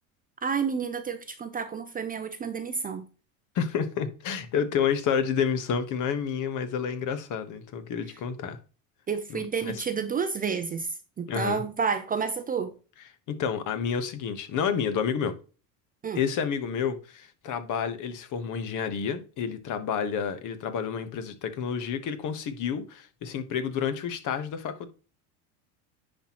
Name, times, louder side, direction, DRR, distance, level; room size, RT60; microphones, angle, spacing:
voice 1, 0.4-3.1 9.1-12.7 16.0-16.2, right 6 dB, 20° right, 0.5 m, -30 dB
voice 2, 3.5-8.6 9.3-9.8 11.3-11.6 13.3-15.3 16.1-24.9, left 7 dB, 45° left, 1.3 m, -29 dB
10.0 x 4.4 x 3.0 m
supercardioid pair, 120°, 42 cm